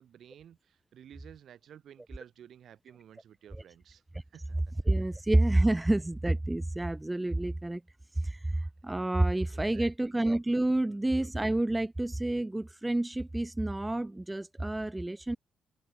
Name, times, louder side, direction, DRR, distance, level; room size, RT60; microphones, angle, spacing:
voice 1, 0.0-4.0 4.3-4.6 9.5-10.2 10.7-11.0, right 9 dB, 65° right, 2.1 m, -53 dB
voice 2, 4.9-7.8 8.2-15.4, right 1 dB, 10° right, 0.5 m, -29 dB
cardioid pair, 90°, 0 cm